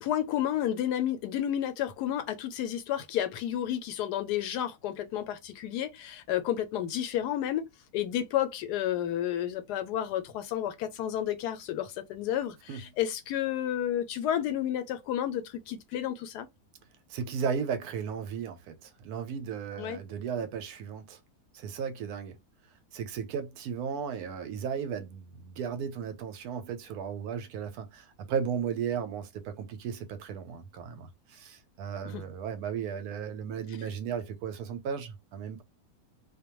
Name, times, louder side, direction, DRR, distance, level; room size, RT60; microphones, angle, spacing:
voice 1, 0.0-7.7 7.9-16.5 19.8-20.0 32.1-32.2, left 11 dB, 90° left, 1.2 m, -31 dB
voice 2, 17.1-21.2 21.5-22.4 22.9-35.6, right 7 dB, 75° right, 1.1 m, -35 dB
2.6 x 2.2 x 2.9 m
omnidirectional pair, 1.7 m